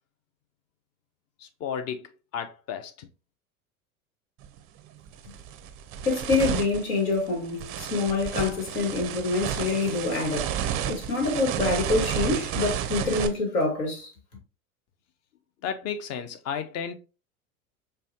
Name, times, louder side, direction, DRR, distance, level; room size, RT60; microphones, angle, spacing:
voice 1, 1.4-3.1 15.6-17.0, left 7 dB, 35° left, 0.7 m, -33 dB
sound 1, 4.4-4.6 5.1-13.3, right 9 dB, 35° right, 0.5 m, -31 dB
voice 2, 6.0-10.6 10.9-14.1, left 3 dB, 75° left, 1.7 m, -26 dB
5.3 x 2.2 x 2.7 m
hypercardioid pair, 85°, 43 cm